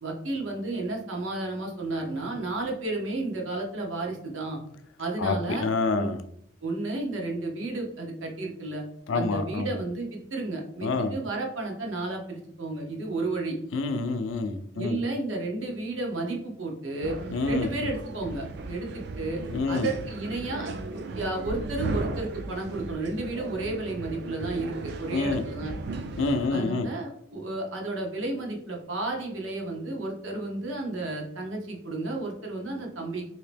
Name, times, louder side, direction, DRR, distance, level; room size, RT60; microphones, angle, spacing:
voice 1, 0.0-4.6 5.0-5.7 6.0-6.1 6.6-8.8 9.1-13.5 14.7-17.2 17.5-19.4 19.7-25.7 26.5-33.2, right 2 dB, 85° right, 0 dB, 0.9 m, -32 dB
voice 2, 5.2-6.2 9.1-9.8 10.8-11.1 13.7-15.0 17.3-17.7 19.5-19.9 25.1-25.4 26.2-26.9, left 3 dB, 80° left, 8 dB, 0.4 m, -27 dB
sound 1, 17.0-26.5, right 3 dB, 55° right, 0.3 m, -36 dB
2.9 x 2.8 x 3.3 m, 0.71 s
head